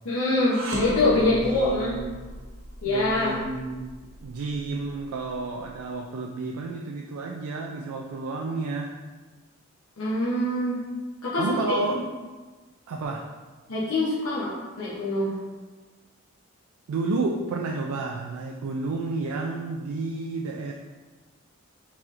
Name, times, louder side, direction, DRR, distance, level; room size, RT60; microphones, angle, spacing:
voice 1, 0.0-1.9 2.8-3.3 10.0-10.8 11.2-11.5 11.9-12.0 13.7-14.5 14.8-15.4, left 2 dB, 80° left, -9 dB, 0.8 m, -24 dB
sound 1, 0.5-5.7, equal, 65° right, 0.9 m, -36 dB
voice 2, 1.1-2.3 2.8-3.9 4.2-9.0 11.4-12.1 12.9-13.3 16.9-20.7, right 3 dB, 90° right, 1 dB, 0.3 m, -31 dB
4.2 x 4.0 x 2.5 m, 1.3 s
head